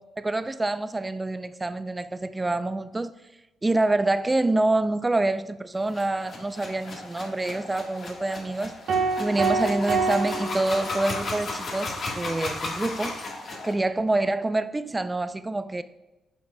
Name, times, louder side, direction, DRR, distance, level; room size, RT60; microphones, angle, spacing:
voice 1, 0.0-3.1 3.6-8.7 9.2-13.2 13.6-15.8, right 2 dB, 15° right, 0.3 m, -26 dB
sound 1, 5.9-13.7, left 3 dB, 50° left, 1.4 m, -35 dB
sound 2, 8.9-11.4, right 4 dB, 65° right, 0.9 m, -27 dB
8.4 x 5.7 x 2.2 m
cardioid pair, 90°, 0 cm